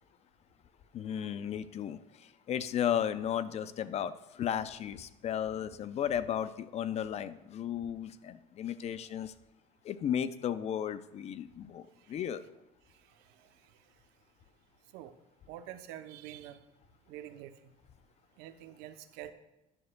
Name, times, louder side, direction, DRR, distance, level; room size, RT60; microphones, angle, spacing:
voice 1, 0.9-9.3 9.8-12.4, left 9 dB, 40° left, 14 dB, 0.4 m, -34 dB
voice 2, 12.9-13.7 14.9-15.1 15.5-16.6 17.1-17.7 18.4-19.3, right 12 dB, 90° right, 10 dB, 0.7 m, -47 dB
11.0 x 10.5 x 2.2 m, 0.94 s
cardioid pair, 125°, 17 cm